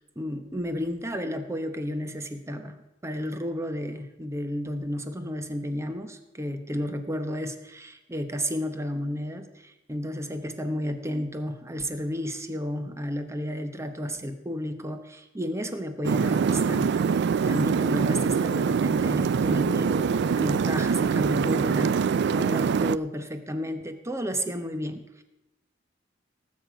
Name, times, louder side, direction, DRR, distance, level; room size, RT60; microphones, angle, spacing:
voice 1, 0.2-17.1 17.4-25.2, equal, 15° right, 8 dB, 1.0 m, -32 dB
sound 1, 16.0-23.0, right 6 dB, 60° right, 0.3 m, -24 dB
18.5 x 7.6 x 5.1 m, 1.0 s
head